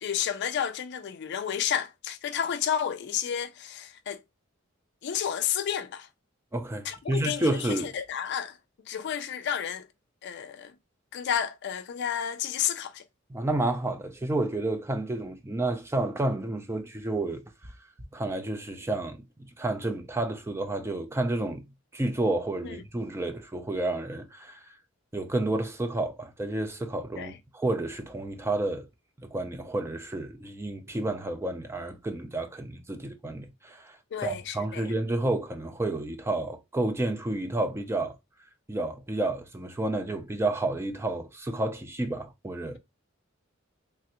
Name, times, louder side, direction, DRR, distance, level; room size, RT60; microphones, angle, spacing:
voice 1, 0.0-4.2 5.0-6.1 6.8-8.6 8.9-9.9 10.2-10.7 11.1-13.0 22.6-22.8 27.2-27.4 34.1-34.9, left 9 dB, 60° left, 0.4 m, -31 dB
voice 2, 6.5-7.9 13.3-17.4 18.1-19.2 19.6-21.7 21.9-24.6 25.1-28.9 29.2-33.9 34.2-38.1 38.7-42.8, right 2 dB, 15° right, 0.4 m, -30 dB
3.3 x 2.3 x 2.8 m
head